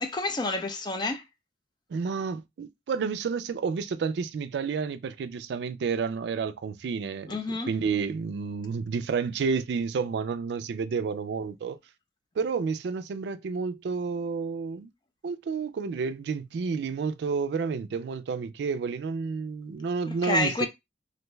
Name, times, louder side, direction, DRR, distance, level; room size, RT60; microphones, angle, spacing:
voice 1, 0.0-1.2 7.3-7.7 20.1-20.7, left 2 dB, 25° left, 0.4 m, -29 dB
voice 2, 1.9-7.4 7.7-11.8 12.4-14.9 15.2-20.7, right 5 dB, 75° right, 0.3 m, -30 dB
2.5 x 2.2 x 3.0 m
head